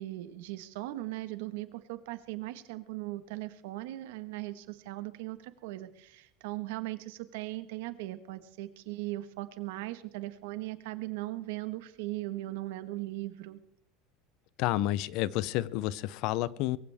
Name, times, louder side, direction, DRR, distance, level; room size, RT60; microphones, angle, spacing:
voice 1, 0.0-13.6, right 17 dB, 75° right, 1.4 m, -39 dB
voice 2, 14.6-16.8, left 15 dB, 55° left, 0.6 m, -30 dB
22.5 x 15.5 x 3.5 m
supercardioid pair, 155°, 0 cm